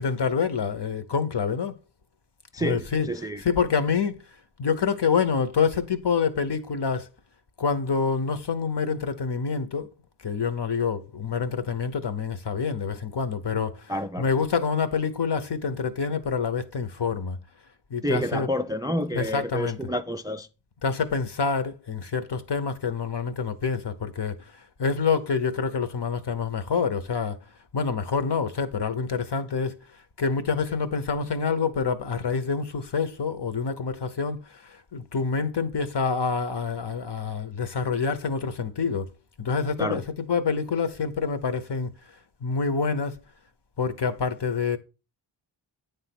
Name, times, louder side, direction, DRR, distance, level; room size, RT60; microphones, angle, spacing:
voice 1, 0.0-1.8 2.6-4.2 4.6-7.1 7.6-9.9 10.2-17.4 17.9-18.5 19.1-19.8 20.8-24.5 24.8-27.4 27.7-29.7 30.2-39.1 39.4-41.9 42.4-43.2 43.8-44.8, left 5 dB, 55° left, 0.9 m, -27 dB
voice 2, 2.5-3.4 13.9-14.3 18.0-20.5 39.8-40.0, equal, 10° right, 0.3 m, -29 dB
8.9 x 3.4 x 5.9 m
wide cardioid pair, 65°, 49 cm